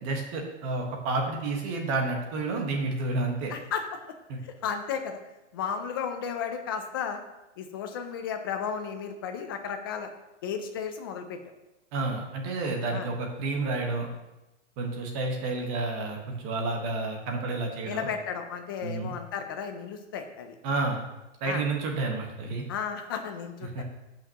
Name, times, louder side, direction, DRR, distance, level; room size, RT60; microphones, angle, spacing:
voice 1, 0.0-3.5 4.3-4.4 11.9-14.1 14.8-18.1 18.8-19.1 20.6-21.0 21.4-22.6 23.6-23.8, right 3 dB, 30° right, 1 dB, 1.4 m, -30 dB
voice 2, 3.5-4.0 4.4-5.2 5.5-7.2 7.6-10.1 10.4-11.4 12.9-13.1 17.9-20.6 21.4-21.6 22.7-23.8, left 7 dB, 20° left, 6 dB, 0.4 m, -34 dB
15.0 x 5.9 x 3.0 m, 0.99 s
hypercardioid pair, 160°, 37 cm